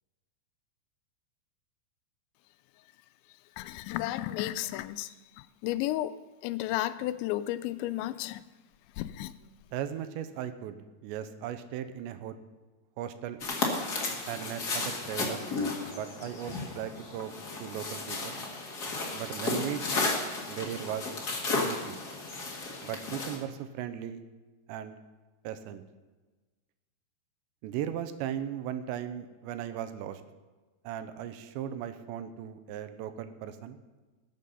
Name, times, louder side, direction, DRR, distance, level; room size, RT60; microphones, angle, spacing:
voice 1, 3.6-6.2 6.4-8.4 9.0-9.3, left 14 dB, 85° left, 2.8 m, -33 dB
voice 2, 9.7-10.8 11.0-12.4 13.0-13.4 14.3-15.4 15.9-17.3 17.6-18.4 19.1-20.0 20.5-21.1 21.6-22.0 22.8-24.2 24.7-25.0 25.4-25.8 27.6-30.2 30.8-33.8, right 10 dB, 80° right, 3.0 m, -37 dB
sound 1, 13.4-23.4, left 3 dB, 55° left, 1.0 m, -33 dB
19.5 x 7.6 x 5.5 m
omnidirectional pair, 5.1 m